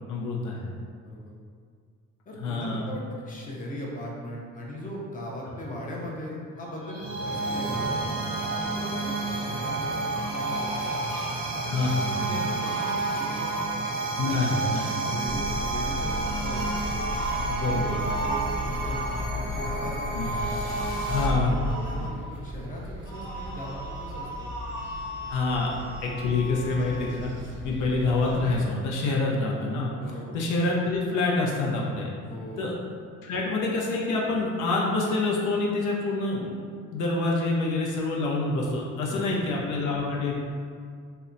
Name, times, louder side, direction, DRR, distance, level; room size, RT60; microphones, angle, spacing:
voice 1, 0.1-0.6 2.4-2.9 11.7-12.1 14.2-14.9 17.5-18.0 20.1-20.3 21.0-21.6 25.3-25.7 26.0-29.9 30.3-32.1 32.6-32.7 33.2-36.6 36.9-40.4, left 3 dB, 80° left, -3 dB, 0.5 m, -27 dB
voice 2, 2.3-8.1 8.6-11.0 11.6-13.5 14.2-14.7 15.0-17.0 17.7-20.4 21.1-24.5 27.6-27.7 30.0-30.4 32.3-32.7 39.1-39.5, left 1 dB, 25° left, -3 dB, 0.5 m, -39 dB
sound 1, 6.6-21.3, right 3 dB, 85° right, 0.8 m, -30 dB
sound 2, 10.1-11.3 12.1-13.7 16.0-19.2 20.6-22.1 23.0-27.1, right 1 dB, 50° left, 0.9 m, -38 dB
sound 3, 15.2-28.6, left 1 dB, 40° right, 0.5 m, -36 dB
2.7 x 2.1 x 2.5 m, 2.1 s
cardioid pair, 90°, 30 cm